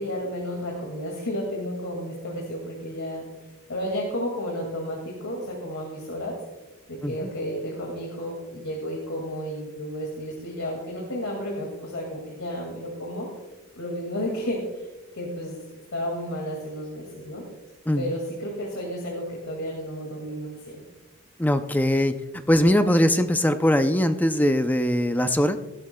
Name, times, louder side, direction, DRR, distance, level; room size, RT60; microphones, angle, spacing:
voice 1, 0.0-3.2 3.7-6.4 6.9-13.3 13.8-14.9 15.1-15.6 15.9-17.4 18.0-20.8, equal, 85° left, -1 dB, 2.1 m, -32 dB
voice 2, 21.4-22.2 22.5-25.6, left 1 dB, 10° left, 9 dB, 0.4 m, -21 dB
16.0 x 12.0 x 2.2 m, 1.1 s
head